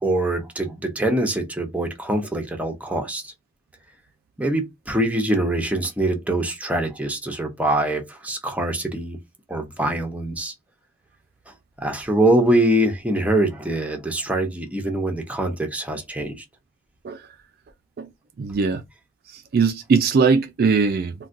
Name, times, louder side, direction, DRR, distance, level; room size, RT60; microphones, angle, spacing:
voice 1, 0.0-3.3 4.4-9.2 9.5-10.5 11.5-16.4, right 1 dB, 5° right, 0.7 m, -24 dB
voice 2, 18.4-18.8 19.3-21.1, right 5 dB, 50° right, 0.3 m, -20 dB
3.8 x 2.2 x 2.5 m
head